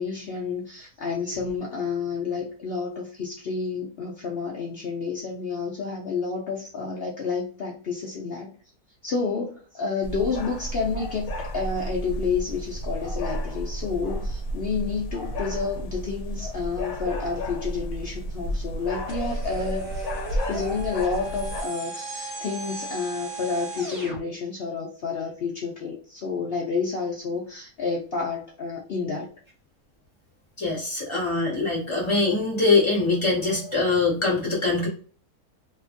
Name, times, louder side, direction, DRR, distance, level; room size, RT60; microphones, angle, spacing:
voice 1, 0.0-8.5 9.0-20.1 20.5-29.3 30.7-30.9, left 5 dB, 80° left, -2 dB, 0.5 m, -30 dB
sound 1, 10.0-21.6, equal, 65° left, 1.0 m, -32 dB
sound 2, 19.1-24.2, right 2 dB, 35° right, 1.3 m, -36 dB
voice 2, 30.6-34.9, left 3 dB, 20° left, -4 dB, 1.1 m, -23 dB
2.9 x 2.4 x 2.5 m, 0.41 s
omnidirectional pair, 1.7 m